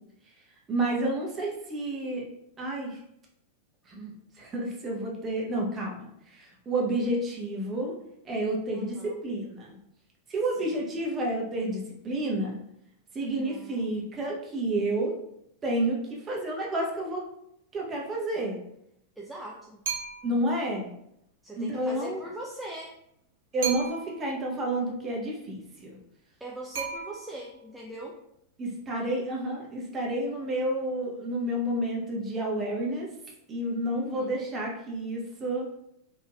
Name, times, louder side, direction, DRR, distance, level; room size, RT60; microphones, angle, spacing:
voice 1, 0.7-2.2 2.6-3.0 3.9-4.1 4.4-7.9 8.3-9.0 9.2-9.8 10.3-12.6 13.1-15.1 15.6-17.2 17.7-18.6 20.2-20.9 21.6-22.3 23.5-26.0 28.6-33.1 33.5-35.7, right 1 dB, 25° right, -2 dB, 0.7 m, -30 dB
voice 2, 8.7-9.2 10.6-10.8 13.2-13.9 19.2-19.8 21.4-23.0 26.4-28.2 34.0-34.6, right 1 dB, 5° right, -3 dB, 0.3 m, -41 dB
sound 1, 19.8-20.5 23.6-24.3 26.7-27.5, right 6 dB, 60° right, 0.6 m, -35 dB
3.0 x 2.6 x 2.2 m, 0.77 s
figure-of-eight pair, 90°, 0 cm